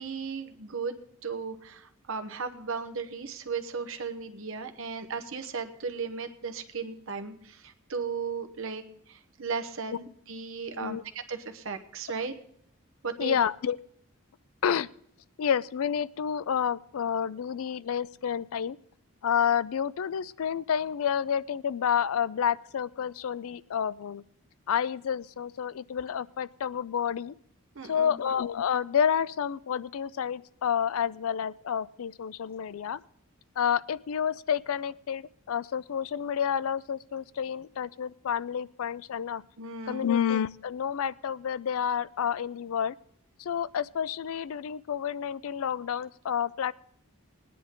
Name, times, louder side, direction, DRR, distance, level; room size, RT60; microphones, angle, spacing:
voice 1, 0.0-11.0 11.3-12.3 13.0-13.4 27.7-28.2 39.6-40.1, right 5 dB, 65° right, 7 dB, 1.0 m, -36 dB
voice 2, 13.2-13.8 14.6-14.9 15.4-18.8 19.2-24.2 24.7-27.3 27.9-33.0 33.6-39.4 39.9-43.0 43.4-46.7, left 8 dB, 70° left, 19 dB, 0.4 m, -29 dB
19.0 x 10.0 x 3.7 m, 0.67 s
head